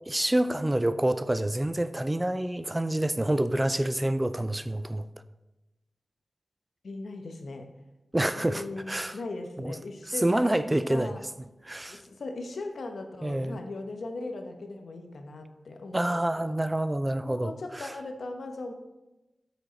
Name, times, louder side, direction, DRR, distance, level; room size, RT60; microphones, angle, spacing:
voice 1, 0.1-5.0 8.1-9.1 9.6-9.7 10.2-11.1 11.7-12.0 13.2-13.6 15.9-17.9, right 1 dB, 20° right, 0.4 m, -27 dB
voice 2, 6.8-7.7 8.3-10.6 10.9-11.2 11.9-16.6 17.2-18.7, left 2 dB, 85° left, 0.9 m, -38 dB
7.9 x 6.4 x 3.9 m
wide cardioid pair, 75°, 0 cm